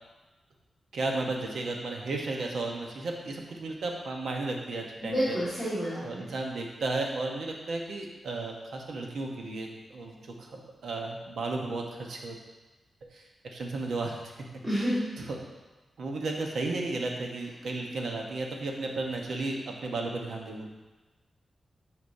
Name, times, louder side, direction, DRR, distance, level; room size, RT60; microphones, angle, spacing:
voice 1, 0.9-5.4 6.0-12.4 13.0-14.2 15.2-15.4 16.0-20.7, right 2 dB, 75° right, 0 dB, 1.0 m, -34 dB
voice 2, 5.0-6.2 14.6-15.1, equal, 20° right, -12 dB, 1.9 m, -29 dB
9.6 x 5.1 x 2.7 m, 1.2 s
wide cardioid pair, 180°, 0 cm